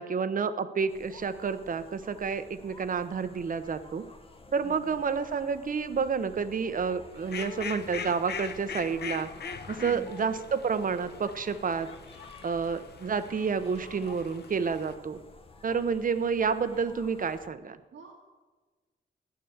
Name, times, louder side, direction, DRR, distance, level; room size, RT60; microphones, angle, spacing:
voice 1, 0.0-4.0 4.5-9.3 9.7-11.9 12.4-15.2 15.6-17.8, right 5 dB, 50° right, 12 dB, 0.9 m, -29 dB
sound 1, 0.9-17.5, left 2 dB, 30° left, 1.4 m, -52 dB
voice 2, 4.6-5.0 9.8-10.1 17.9-18.1, right 6 dB, 85° right, 1 dB, 1.8 m, -44 dB
Fowl, 7.1-14.9, left 7 dB, 65° left, 0.9 m, -42 dB
15.0 x 11.0 x 7.1 m, 1.3 s
wide cardioid pair, 130°, 19 cm